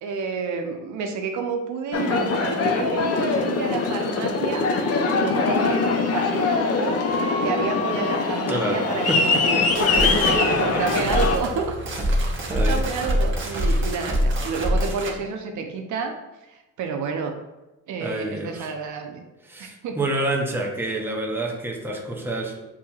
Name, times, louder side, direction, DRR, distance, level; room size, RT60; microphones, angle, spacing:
voice 1, 0.0-4.7 5.1-11.7 12.7-16.2 16.5-17.4 17.9-19.2 19.6-20.0, right 5 dB, 75° right, 4 dB, 0.7 m, -29 dB
Aircraft, 1.9-11.4, left 4 dB, 55° left, 0.6 m, -23 dB
voice 2, 8.5-9.7 10.0-11.1 12.5-12.8 13.5-13.8 18.0-18.7 19.4-22.6, right 1 dB, 5° right, -1 dB, 0.8 m, -29 dB
sound 1, 9.6-15.2, equal, 40° right, 1.0 m, -25 dB
7.1 x 2.7 x 2.3 m, 1.0 s
cardioid pair, 90°, 30 cm